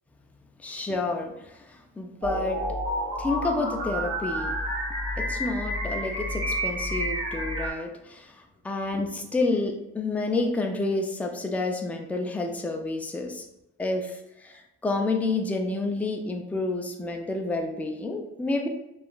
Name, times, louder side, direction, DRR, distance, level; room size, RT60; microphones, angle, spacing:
voice 1, 0.6-2.6 3.2-4.6 5.2-8.3 8.6-13.4 13.8-18.7, left 2 dB, 5° left, 2 dB, 0.3 m, -29 dB
sound 1, 2.2-7.7, equal, 70° right, 1.3 m, -30 dB
2.8 x 2.3 x 2.4 m, 0.89 s
cardioid pair, 90°, 30 cm